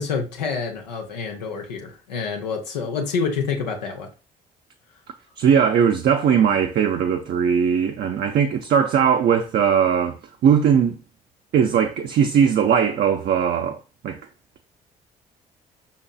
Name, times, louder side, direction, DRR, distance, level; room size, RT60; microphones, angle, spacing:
voice 1, 0.0-4.1, left 5 dB, 85° left, 0.5 m, -27 dB
voice 2, 5.4-10.2 10.4-11.0 11.5-13.8 14.0-14.2, right 7 dB, 50° right, 0.5 m, -19 dB
5.2 x 2.8 x 2.2 m
hypercardioid pair, 45°, 21 cm